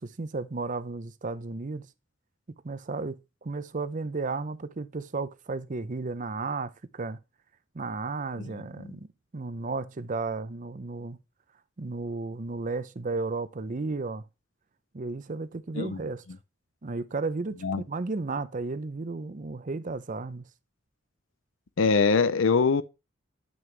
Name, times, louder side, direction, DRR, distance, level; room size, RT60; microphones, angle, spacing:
voice 1, 0.0-1.9 2.5-7.2 7.7-11.2 11.8-14.2 14.9-16.2 16.8-20.4, right 3 dB, 40° right, 0.6 m, -34 dB
voice 2, 8.4-9.0 15.7-16.0 17.6-17.8 21.8-22.8, left 4 dB, 80° left, 0.6 m, -24 dB
9.0 x 6.2 x 3.3 m
head